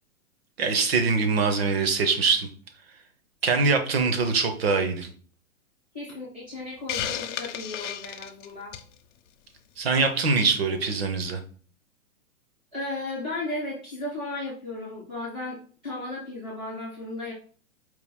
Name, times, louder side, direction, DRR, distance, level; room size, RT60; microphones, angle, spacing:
voice 1, 0.6-2.5 3.4-5.1 9.8-11.4, right 4 dB, 45° right, 6 dB, 0.8 m, -23 dB
voice 2, 5.9-8.7 12.7-17.3, left 2 dB, 10° right, -7 dB, 0.5 m, -35 dB
Hiss, 6.9-8.9, left 10 dB, 65° left, 0.5 m, -33 dB
4.6 x 2.3 x 3.5 m, 0.43 s
hypercardioid pair, 175°, 41 cm